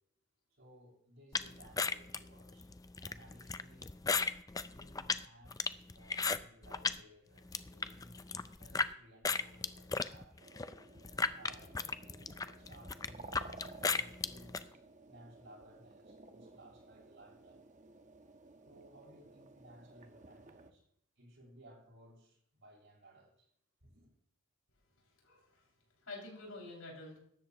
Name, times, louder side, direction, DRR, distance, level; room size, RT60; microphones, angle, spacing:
voice 1, 0.5-2.7 3.0-4.0 4.6-10.4 11.2-17.6 18.6-20.8 21.2-23.5 23.8-24.1, right 1 dB, 60° right, 6.3 m, -60 dB
sound 1, 1.3-7.0 7.4-8.9 9.2-14.6, left 4 dB, 15° left, 0.4 m, -36 dB
sound 2, 10.4-20.7, right 3 dB, 35° right, 1.1 m, -56 dB
voice 2, 25.2-25.7 26.0-27.2, left 2 dB, 80° left, 6.0 m, -48 dB
18.0 x 13.5 x 3.0 m
head